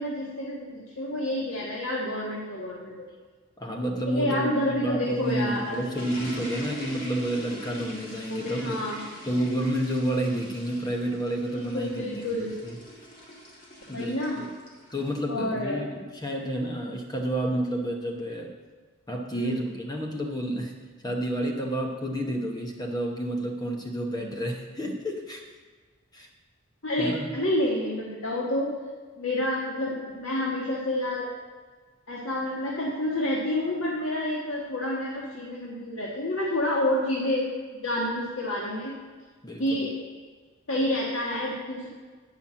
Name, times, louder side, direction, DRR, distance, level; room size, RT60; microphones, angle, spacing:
voice 1, 0.0-3.1 4.1-5.8 8.3-9.0 11.5-12.6 13.9-14.4 15.3-15.8 19.3-19.6 26.8-28.7 29.2-31.3 32.1-37.5 37.8-38.9 39.6-39.9 40.7-41.9, left 1 dB, 80° left, -4 dB, 1.4 m, -29 dB
voice 2, 3.6-8.8 9.3-12.8 13.9-14.5 14.9-18.5 19.1-20.7 21.0-25.4 26.1-26.3 27.0-27.3 39.4-39.9, right 1 dB, 20° left, 2 dB, 0.9 m, -30 dB
sound 1, 5.0-15.2, equal, 45° left, 2.4 m, -42 dB
9.1 x 5.7 x 7.4 m, 1.4 s
head